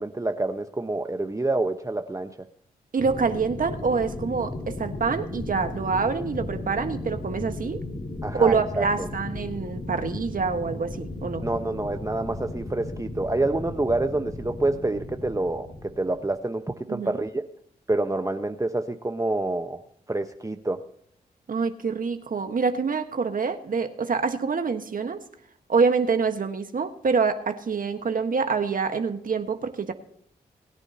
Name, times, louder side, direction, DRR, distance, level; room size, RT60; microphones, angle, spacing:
voice 1, 0.0-2.3 8.2-8.8 11.4-17.4 17.9-19.8 20.1-20.8, right 2 dB, 20° right, 6 dB, 1.1 m, -27 dB
voice 2, 2.9-7.8 8.3-11.4 16.9-17.2 21.5-25.2 25.7-29.9, right 5 dB, 55° right, 7 dB, 1.5 m, -26 dB
sound 1, 3.0-16.3, left 2 dB, 50° left, 5.4 m, -35 dB
21.5 x 9.7 x 2.9 m, 0.68 s
supercardioid pair, 45°, 17 cm